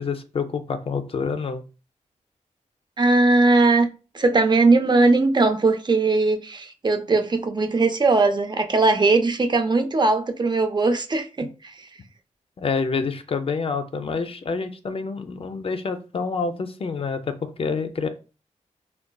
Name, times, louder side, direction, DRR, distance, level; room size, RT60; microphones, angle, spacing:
voice 1, 0.0-1.6 12.6-18.1, left 5 dB, 45° left, 0.4 m, -27 dB
voice 2, 3.0-11.9, right 3 dB, 35° right, 0.4 m, -20 dB
3.6 x 2.2 x 2.2 m
cardioid pair, 75°, 13 cm